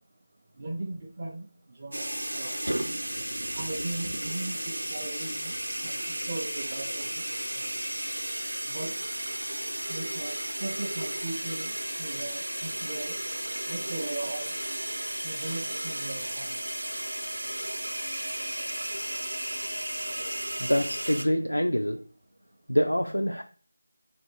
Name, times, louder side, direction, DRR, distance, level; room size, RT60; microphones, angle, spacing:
voice 1, 0.6-2.6 3.6-7.2 7.5-7.7 8.7-9.0 9.9-11.7 12.0-13.2 13.7-14.5 15.2-16.6, right 2 dB, 30° right, 0.4 m, -38 dB
sound 1, 1.9-21.3, right 1 dB, 75° right, 0.6 m, -34 dB
voice 2, 20.6-22.0 22.7-23.4, equal, 85° left, 0.4 m, -25 dB
3.2 x 2.6 x 4.4 m
figure-of-eight pair, 165°, 0 cm